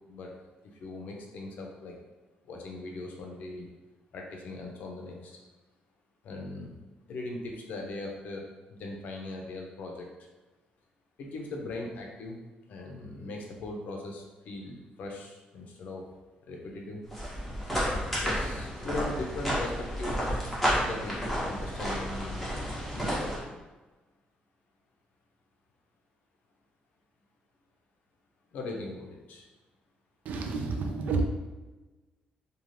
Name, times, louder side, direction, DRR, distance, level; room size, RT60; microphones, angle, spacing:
voice 1, 0.8-2.0 2.5-3.7 4.1-5.4 6.2-6.8 7.1-10.1 11.2-12.4 12.7-16.1 16.5-17.0 18.2-20.5 20.8-22.4 22.9-23.6 28.5-29.5, left 2 dB, 65° left, 1 dB, 0.5 m, -39 dB
sound 1, 17.1-23.4, equal, 5° left, 0.7 m, -31 dB
voice 2, 30.2-31.2, right 3 dB, 60° right, 3 dB, 0.3 m, -29 dB
2.5 x 2.3 x 3.1 m, 1.2 s
cardioid pair, 175°, 3 cm